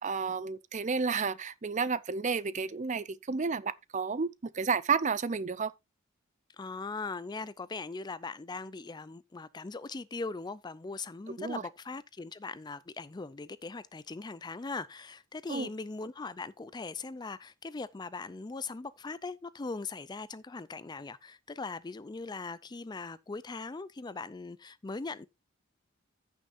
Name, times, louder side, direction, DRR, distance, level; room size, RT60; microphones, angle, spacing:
voice 1, 0.0-5.7 11.4-11.6 15.5-15.7, right 5 dB, 35° right, 0.5 m, -31 dB
voice 2, 6.6-25.3, left 3 dB, 20° left, 0.4 m, -40 dB
15.0 x 6.3 x 2.6 m
head